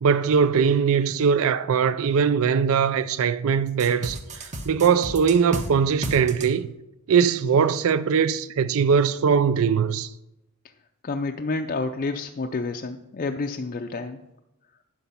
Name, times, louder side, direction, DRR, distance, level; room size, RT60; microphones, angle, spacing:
voice 1, 0.0-6.7 7.1-10.1, right 6 dB, 65° right, 0.4 m, -21 dB
sound 1, 3.8-5.7 6.0-6.5, right 1 dB, 30° right, 1.0 m, -32 dB
voice 2, 11.0-14.2, left 3 dB, 40° left, 0.4 m, -29 dB
10.0 x 5.9 x 5.5 m
head